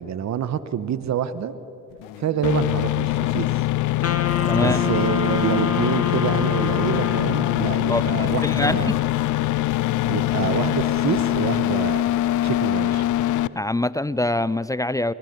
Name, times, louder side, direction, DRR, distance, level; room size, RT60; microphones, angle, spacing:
voice 1, 0.0-1.5 2.2-3.6 4.5-9.0 10.1-12.0 12.4-13.1, right 8 dB, 60° right, 14 dB, 1.2 m, -27 dB
sound 1, 1.9-3.1 3.6-3.7 4.3-12.7, left 12 dB, 80° left, 1.0 m, -43 dB
sound 2, 2.4-13.5, left 15 dB, 65° left, 0.6 m, -23 dB
Wind instrument woodwind instrument, 4.0-7.9, left 6 dB, 50° left, 1.4 m, -27 dB
voice 2, 4.5-4.8 7.9-8.9 13.5-15.1, left 1 dB, 10° left, 18 dB, 0.5 m, -24 dB
23.5 x 19.5 x 6.9 m, 2.6 s
supercardioid pair, 60°, 32 cm